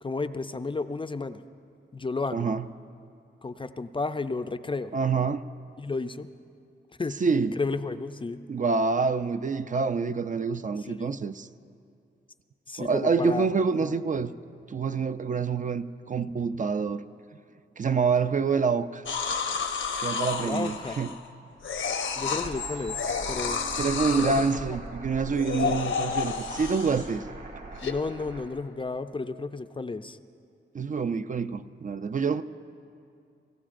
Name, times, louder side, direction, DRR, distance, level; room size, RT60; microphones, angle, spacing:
voice 1, 0.0-1.4 1.9-2.5 3.4-4.9 5.8-6.3 7.0-7.2 7.6-8.4 10.9-11.2 12.7-13.5 13.8-14.0 20.4-21.0 22.2-23.6 24.2-24.5 25.8-25.9 27.8-30.2, left 3 dB, 25° left, 0.4 m, -32 dB
voice 2, 2.3-2.7 4.9-5.5 7.2-7.6 8.5-11.5 12.8-14.4 14.7-17.0 17.8-19.0 20.0-21.1 23.8-27.2 30.7-32.4, right 5 dB, 40° right, 0.4 m, -27 dB
sound 1, 19.1-21.3 21.6-22.5 22.9-24.6 25.2-27.2 27.8-27.9, left 6 dB, 85° left, 0.8 m, -31 dB
sound 2, 22.2-28.5, right 1 dB, 60° right, 3.0 m, -41 dB
24.5 x 15.0 x 2.5 m
wide cardioid pair, 75°, 20 cm